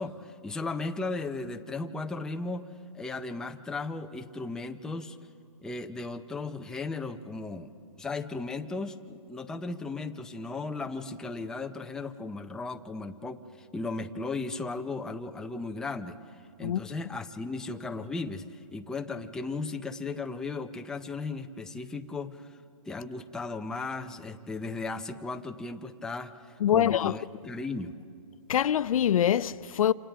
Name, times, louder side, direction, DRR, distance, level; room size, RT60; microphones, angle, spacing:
voice 1, 0.0-2.7 2.9-5.2 5.6-16.2 16.6-22.6 22.9-28.0, left 3 dB, 5° left, 0.4 m, -36 dB
voice 2, 26.6-27.2 28.5-29.9, left 10 dB, 65° left, 0.5 m, -24 dB
28.5 x 27.0 x 3.4 m
hypercardioid pair, 140°, 19 cm